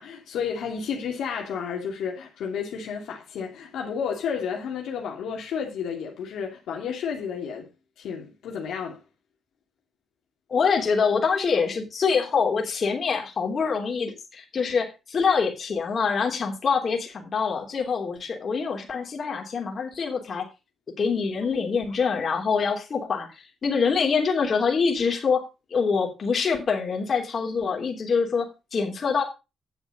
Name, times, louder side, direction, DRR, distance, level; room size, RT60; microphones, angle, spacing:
voice 1, 0.0-7.7 8.0-9.0, left 7 dB, 80° left, 2.7 m, -31 dB
voice 2, 10.5-20.5 21.0-25.4 25.7-29.2, left 5 dB, 45° left, 3.2 m, -25 dB
10.0 x 7.2 x 5.0 m
cardioid pair, 90°, 0 cm